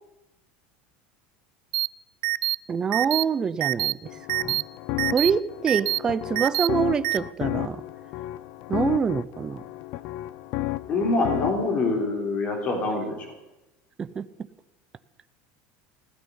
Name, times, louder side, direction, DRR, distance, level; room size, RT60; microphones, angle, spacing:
sound 1, 1.7-1.9 2.2-2.6 2.9-3.2 3.6-3.9 4.3-4.6 5.0-5.3 5.7-6.0 6.4-6.7 7.0-7.2, right 20 dB, 70° right, 0.5 m, -25 dB
voice 1, 2.7-4.1 4.4-4.6 5.1-7.8 8.7-9.6 14.0-14.3, right 6 dB, 15° right, 14 dB, 0.5 m, -25 dB
sound 2, 4.0-11.7, left 17 dB, 45° left, 0.5 m, -33 dB
voice 2, 10.9-13.2, left 3 dB, 30° left, 3 dB, 3.6 m, -25 dB
15.5 x 9.5 x 9.9 m, 0.96 s
cardioid pair, 175°, 5 cm